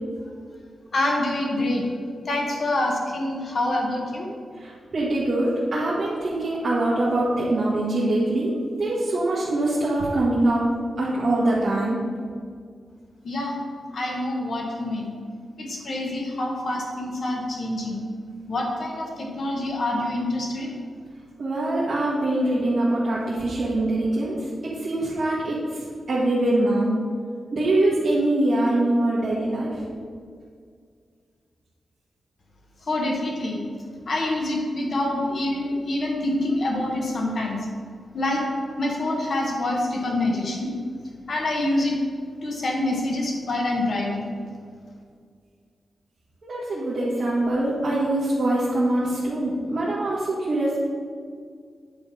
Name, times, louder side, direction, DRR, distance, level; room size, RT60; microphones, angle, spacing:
voice 1, 0.9-1.8 2.2-4.3 13.2-13.5 13.9-15.1 15.6-18.0 18.5-20.7 32.9-33.6 34.1-37.6 38.1-38.4 38.8-40.7 41.3-42.0 42.4-44.3, left 1 dB, 45° left, 0 dB, 1.4 m, -26 dB
voice 2, 4.6-10.6 11.0-12.0 21.4-25.6 26.1-26.9 27.5-29.7 46.4-50.8, right 1 dB, 40° right, -9 dB, 1.4 m, -23 dB
9.1 x 3.9 x 5.4 m, 2.1 s
wide cardioid pair, 175°, 0 cm